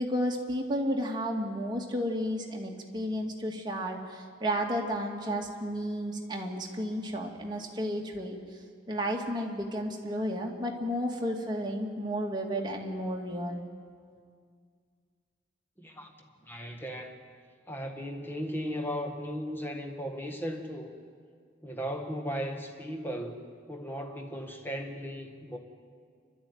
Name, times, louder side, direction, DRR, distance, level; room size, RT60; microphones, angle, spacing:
voice 1, 0.0-8.4 8.9-13.6, equal, 25° right, 0 dB, 2.3 m, -32 dB
voice 2, 15.8-16.1 16.4-17.1 17.7-20.9 21.6-25.6, equal, 10° left, 2 dB, 1.8 m, -36 dB
28.5 x 13.0 x 9.6 m, 2.1 s
head